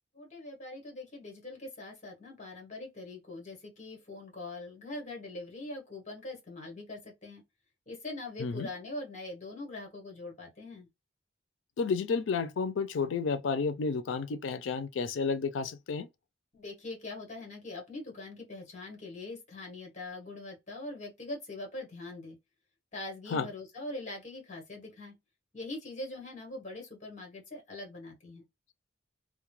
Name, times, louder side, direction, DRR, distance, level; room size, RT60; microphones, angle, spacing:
voice 1, 0.1-7.4 7.9-10.9 16.5-22.4 22.9-25.2 25.5-28.4, left 2 dB, 40° left, 1.1 m, -42 dB
voice 2, 11.8-16.1 23.3-23.5, left 5 dB, 80° left, 0.4 m, -31 dB
2.2 x 2.1 x 3.0 m
head